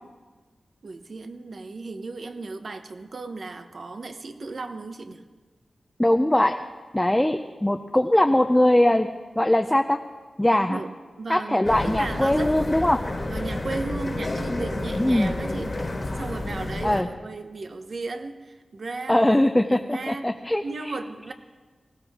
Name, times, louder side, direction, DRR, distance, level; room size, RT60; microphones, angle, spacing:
voice 1, 0.8-5.2 10.7-10.9 11.2-12.6 13.2-15.8 16.1-19.4 19.7-20.3 20.6-21.3, right 3 dB, 60° right, 8 dB, 0.9 m, -35 dB
voice 2, 6.0-6.6 6.9-9.1 9.4-10.0 10.4-10.8 11.3-13.0 15.0-15.3 16.8-17.1 19.1-20.9, left 1 dB, 10° left, 5 dB, 0.5 m, -21 dB
sound 1, 11.6-17.0, left 2 dB, 35° left, 1.7 m, -30 dB
19.5 x 16.0 x 3.6 m, 1.4 s
wide cardioid pair, 95°, 0 cm